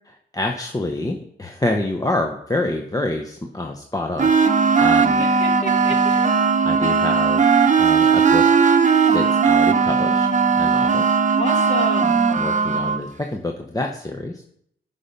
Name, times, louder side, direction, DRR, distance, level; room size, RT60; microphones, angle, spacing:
voice 1, 0.3-5.2 6.6-8.4 8.8-11.3 12.4-14.4, left 2 dB, 15° left, 2 dB, 0.9 m, -27 dB
sound 1, 4.2-13.0, right 5 dB, 35° right, 0.9 m, -17 dB
voice 2, 5.2-6.3 11.4-12.2, equal, 35° left, 2 dB, 2.5 m, -29 dB
9.5 x 5.4 x 5.3 m, 0.70 s
cardioid pair, 70°, 21 cm